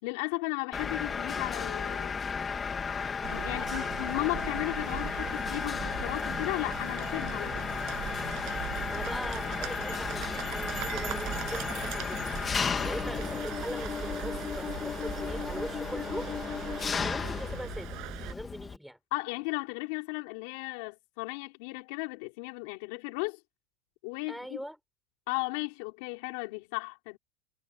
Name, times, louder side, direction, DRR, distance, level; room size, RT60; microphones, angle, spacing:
voice 1, 0.0-2.2 3.3-7.7 19.1-23.4 24.0-24.6 25.3-27.2, left 27 dB, 55° left, 3.6 m, -35 dB
Mechanisms, 0.7-18.8, left 6 dB, 15° left, 1.9 m, -34 dB
sound 1, 3.2-18.3, right 19 dB, 40° right, 6.1 m, -40 dB
voice 2, 3.4-4.1 8.9-12.3 12.8-16.3 17.0-18.0 18.2-19.0 24.3-24.8, equal, ahead, 4.8 m, -41 dB
supercardioid pair, 170°, 0 cm